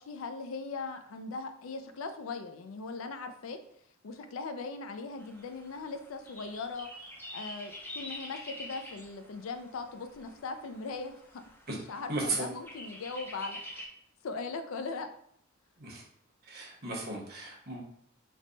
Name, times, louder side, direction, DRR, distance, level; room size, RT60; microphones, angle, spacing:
voice 1, 0.0-3.6 4.0-6.9 7.3-11.4 11.7-13.9 14.2-15.1, left 4 dB, 70° left, 8 dB, 0.4 m, -39 dB
sound 1, 5.2-13.9, left 1 dB, 10° left, 0.5 m, -47 dB
voice 2, 12.1-12.5 15.8-16.0 16.5-17.8, right 2 dB, 50° right, -2 dB, 1.0 m, -35 dB
3.3 x 2.1 x 3.9 m, 0.69 s
head